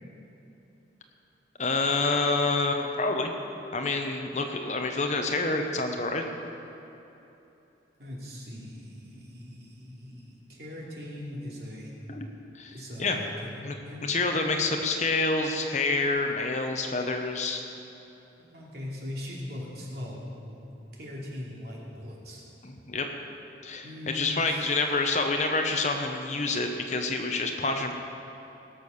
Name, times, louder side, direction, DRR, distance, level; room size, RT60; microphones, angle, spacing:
voice 1, 1.6-3.3 3.7-6.2 12.1-12.3 12.5-13.2 13.6-13.7 14.0-17.6 22.6-23.1 23.6-27.9, left 3 dB, 40° left, 4 dB, 1.0 m, -27 dB
voice 2, 8.0-10.2 10.5-11.9 12.7-13.5 13.8-14.1 18.4-20.6 20.9-22.4 23.8-24.7, left 1 dB, 60° right, -3 dB, 2.8 m, -40 dB
19.0 x 6.9 x 6.5 m, 3.0 s
head